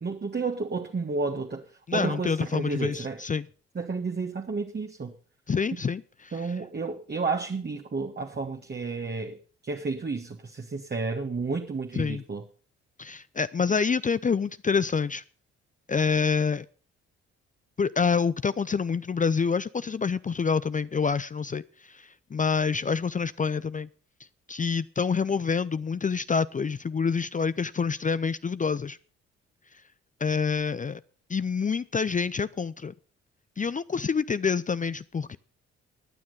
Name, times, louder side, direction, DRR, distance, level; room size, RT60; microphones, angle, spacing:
voice 1, 0.0-1.6 1.9-3.2 3.7-5.1 6.3-9.4 9.6-12.4, right 4 dB, 30° right, 1.6 m, -31 dB
voice 2, 1.9-3.5 5.5-6.4 12.0-12.2 13.0-15.2 15.9-16.7 17.8-23.9 24.5-29.0 30.2-31.0 31.3-32.9 33.6-35.4, left 5 dB, 25° left, 0.5 m, -27 dB
15.0 x 9.6 x 5.4 m
hypercardioid pair, 45°, 31 cm